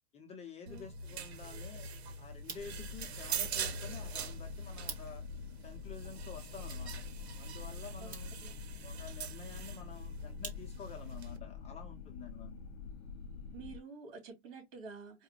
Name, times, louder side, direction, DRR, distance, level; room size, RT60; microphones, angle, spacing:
voice 1, 0.1-1.9 2.2-5.2 5.6-7.0 7.4-8.4 8.8-12.6, left 6 dB, 20° left, 0.6 m, -50 dB
sound 1, 0.7-11.4, right 4 dB, 90° right, 0.9 m, -43 dB
sound 2, 2.3-11.1, right 5 dB, 25° right, 1.2 m, -53 dB
sound 3, 2.6-13.8, left 6 dB, 80° left, 0.6 m, -48 dB
voice 2, 13.5-15.2, right 4 dB, 45° right, 3.0 m, -49 dB
4.7 x 2.2 x 3.0 m
supercardioid pair, 135°, 32 cm